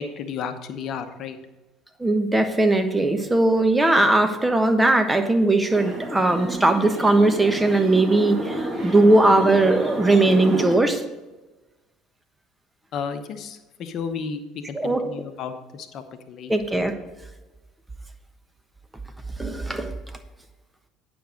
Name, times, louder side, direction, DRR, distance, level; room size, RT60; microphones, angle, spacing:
voice 1, 0.0-1.4 10.5-10.7 12.9-16.5, left 6 dB, 55° left, 8 dB, 1.0 m, -33 dB
voice 2, 2.0-11.0 14.7-15.1 16.5-16.9 19.4-19.9, right 2 dB, 15° right, 7 dB, 1.2 m, -19 dB
sound 1, 5.7-10.7, right 1 dB, 30° right, 2.1 m, -30 dB
9.2 x 6.2 x 5.1 m, 1.1 s
hypercardioid pair, 60°, 0 cm